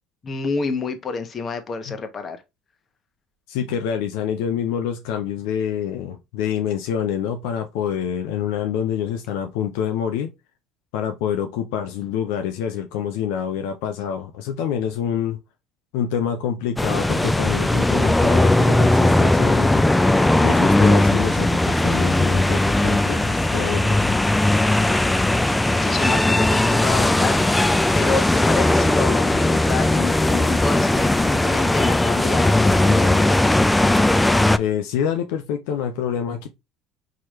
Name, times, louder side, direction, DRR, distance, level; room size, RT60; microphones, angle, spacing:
voice 1, 0.2-2.4 25.8-33.2, left 4 dB, 35° left, 1.0 m, -28 dB
voice 2, 3.5-10.3 10.9-15.4 15.9-19.9 20.4-24.2 34.6-36.5, left 8 dB, 75° left, 0.5 m, -26 dB
sound 1, 16.8-34.6, left 1 dB, 10° left, 0.4 m, -18 dB
4.7 x 3.0 x 3.0 m
hypercardioid pair, 75°, 0 cm